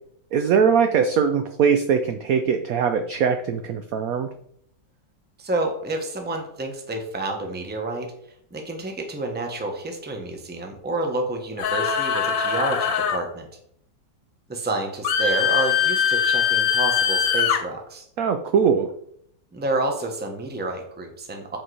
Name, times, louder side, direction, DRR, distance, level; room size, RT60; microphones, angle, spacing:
voice 1, 0.3-4.3 18.2-18.9, right 6 dB, 75° right, 8 dB, 0.8 m, -21 dB
voice 2, 5.4-8.1 8.5-13.5 14.5-18.1 19.5-21.6, right 2 dB, 10° right, 3 dB, 0.7 m, -29 dB
sound 1, 11.6-13.2 15.0-17.6, left 7 dB, 80° left, 1.6 m, -22 dB
7.6 x 4.4 x 4.8 m, 0.70 s
omnidirectional pair, 2.1 m